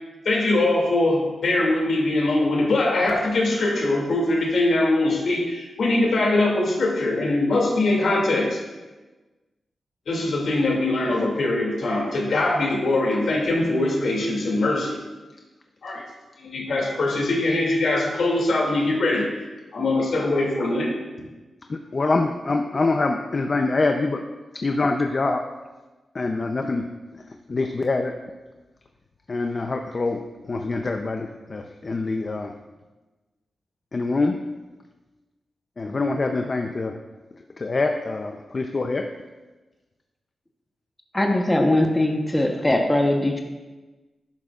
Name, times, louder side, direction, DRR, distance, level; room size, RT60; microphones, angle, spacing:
voice 1, 0.2-8.6 10.1-15.0 15.8-16.0 16.4-19.3 19.7-20.9, left 2 dB, 70° left, -1 dB, 2.6 m, -22 dB
voice 2, 21.7-24.2 24.5-25.4 26.1-26.8 27.5-28.1 29.3-32.5 33.9-34.4 35.8-36.9 37.6-39.0, left 3 dB, 40° left, 4 dB, 0.6 m, -25 dB
voice 3, 41.1-43.4, left 1 dB, 15° left, 2 dB, 1.1 m, -20 dB
11.5 x 10.5 x 2.5 m, 1.2 s
cardioid pair, 85°, 0 cm